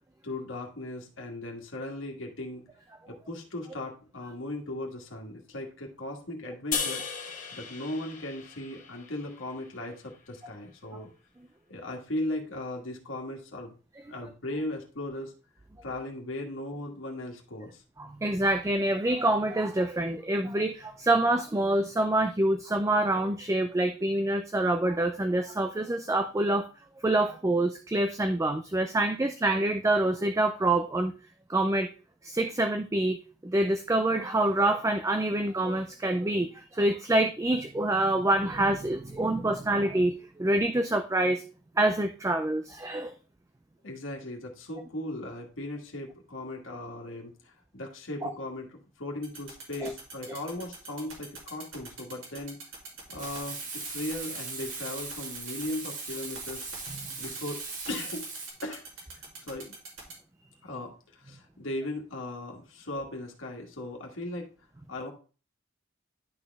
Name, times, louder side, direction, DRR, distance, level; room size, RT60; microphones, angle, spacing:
voice 1, 0.2-2.6 3.1-7.0 7.5-11.1 11.7-13.7 14.1-15.3 15.8-17.8 43.8-52.6 53.1-53.6 53.8-56.6 57.2-58.3 58.6-58.9 59.5-59.8 60.6-64.5 64.9-65.1, left 1 dB, 75° left, 0 dB, 1.6 m, -37 dB
sound 1, 6.7-10.0, left 6 dB, 40° left, 1.2 m, -36 dB
voice 2, 18.0-26.7 27.0-31.1 31.5-31.9 32.2-33.2 33.4-41.4 41.8-43.1 48.2-48.3 49.8-49.9 56.9-57.1, right 1 dB, 15° right, 6 dB, 0.4 m, -26 dB
sound 2, 49.2-60.1, right 5 dB, 90° right, 2.7 m, -43 dB
Frying (food), 53.2-58.5, right 4 dB, 40° right, 1.7 m, -39 dB
11.0 x 4.3 x 3.4 m, 0.35 s
head